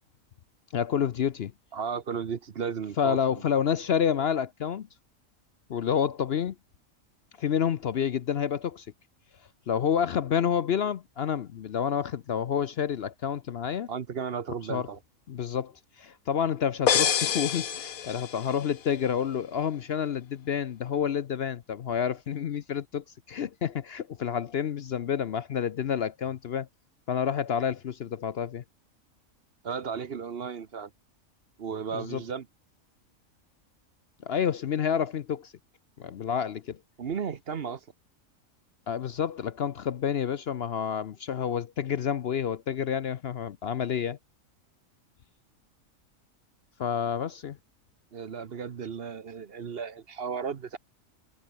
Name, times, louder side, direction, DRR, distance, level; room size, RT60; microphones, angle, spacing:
voice 1, 0.7-1.5 3.0-4.9 5.7-6.5 7.4-8.9 9.7-13.9 14.7-14.9 15.3-26.7 27.1-28.6 31.9-32.2 34.2-35.5 36.0-36.8 38.9-44.2 46.8-47.6, left 8 dB, 55° left, 0.8 m, -29 dB
voice 2, 1.7-3.4 13.9-15.0 29.6-30.9 31.6-32.5 37.0-37.8 48.1-50.8, right 6 dB, 50° right, 1.1 m, -34 dB
sound 1, 16.9-18.7, left 8 dB, 85° left, 1.6 m, -27 dB
omnidirectional pair, 1.4 m